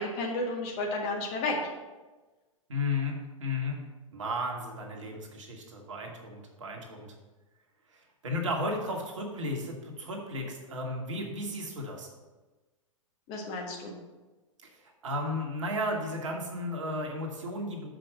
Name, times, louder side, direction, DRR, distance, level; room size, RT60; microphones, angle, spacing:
voice 1, 0.0-1.6 13.3-13.9, left 2 dB, 35° left, 1 dB, 1.6 m, -32 dB
voice 2, 2.7-3.1 3.4-3.8 4.1-7.1 7.9-12.1 15.0-17.9, left 1 dB, 65° right, 1 dB, 1.7 m, -34 dB
6.8 x 5.1 x 6.5 m, 1.2 s
figure-of-eight pair, 105°, 17 cm